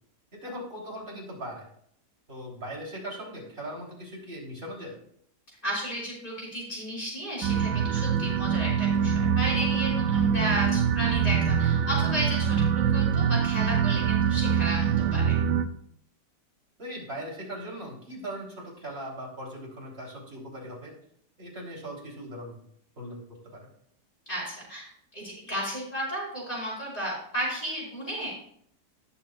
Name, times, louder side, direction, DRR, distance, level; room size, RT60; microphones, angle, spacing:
voice 1, 0.3-1.6 2.3-5.0 11.8-11.9 16.8-20.9 21.4-22.6 23.0-23.2 23.4-23.7, equal, 35° right, -3 dB, 3.7 m, -39 dB
voice 2, 5.6-15.4 24.2-24.9 25.1-28.3, equal, 30° left, -6 dB, 5.0 m, -33 dB
sound 1, 7.4-15.6, right 7 dB, 70° right, 1.1 m, -24 dB
19.5 x 7.1 x 2.4 m, 0.67 s
omnidirectional pair, 1.8 m